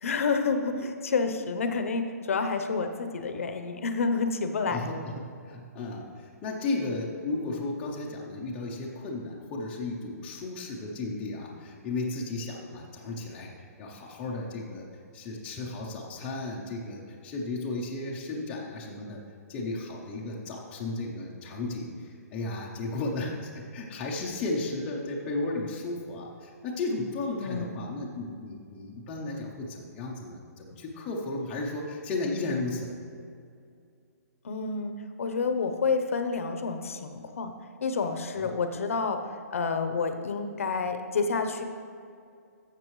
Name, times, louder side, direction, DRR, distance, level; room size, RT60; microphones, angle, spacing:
voice 1, 0.0-4.8 27.4-27.7 34.4-37.5 37.8-39.2 39.5-41.6, left 4 dB, 55° left, 7 dB, 0.7 m, -29 dB
voice 2, 4.7-19.2 19.5-33.0 38.4-38.5, left 2 dB, 10° left, -3 dB, 0.5 m, -34 dB
12.0 x 7.3 x 3.1 m, 2.4 s
hypercardioid pair, 175°, 9 cm